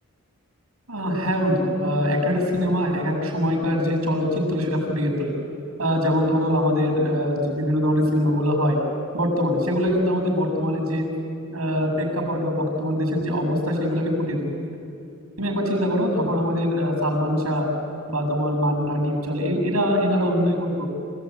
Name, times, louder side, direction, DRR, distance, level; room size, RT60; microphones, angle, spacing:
voice 1, 0.9-5.3 5.8-8.8 9.1-11.0 11.5-14.5 15.4-17.7 18.1-20.9, equal, 85° right, 3 dB, 7.2 m, -23 dB
27.5 x 16.0 x 9.5 m, 2.5 s
head